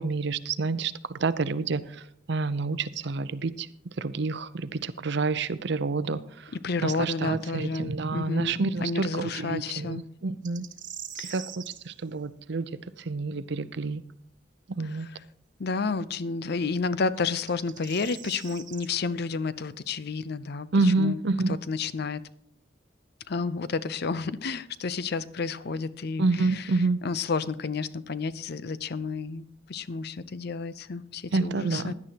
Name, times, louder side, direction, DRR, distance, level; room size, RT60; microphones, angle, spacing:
voice 1, 0.0-3.7 4.0-6.5 6.8-10.6 11.3-12.7 13.0-14.0 14.7-15.1 20.7-21.5 26.2-27.0 31.3-31.9, right 3 dB, 65° right, 15 dB, 0.6 m, -28 dB
voice 2, 6.6-10.0 11.2-11.3 15.0-15.1 15.6-21.2 21.7-22.2 23.3-26.7 27.0-29.4 29.7-31.9, left 4 dB, 60° left, 15 dB, 0.6 m, -31 dB
sound 1, 10.4-11.8 15.0-15.1 17.2-18.9, right 10 dB, 45° right, 1.2 m, -42 dB
16.5 x 11.0 x 2.9 m, 0.72 s
head